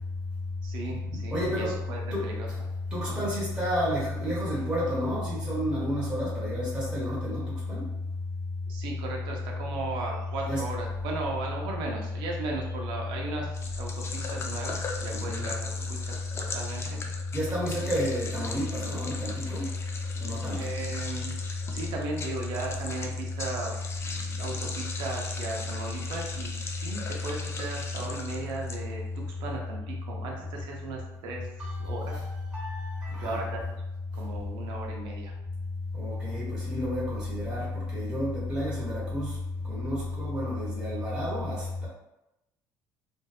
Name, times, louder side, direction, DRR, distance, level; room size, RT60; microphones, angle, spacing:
voice 1, 0.6-2.5 3.1-3.2 8.7-17.0 20.5-21.3 21.7-23.7 24.0-31.5 31.8-32.2 33.2-33.6 34.1-35.3, right 3 dB, 75° right, -1 dB, 0.6 m, -37 dB
voice 2, 1.3-1.8 2.1-2.5 2.9-7.9 10.4-10.7 15.1-15.5 17.3-19.7 20.2-20.7 31.6-33.4 35.9-39.4 39.6-41.9, left 1 dB, 10° right, -8 dB, 0.8 m, -30 dB
sound 1, 13.5-29.2, left 4 dB, 35° left, 0.3 m, -40 dB
2.5 x 2.1 x 2.3 m, 0.91 s
cardioid pair, 110°, 8 cm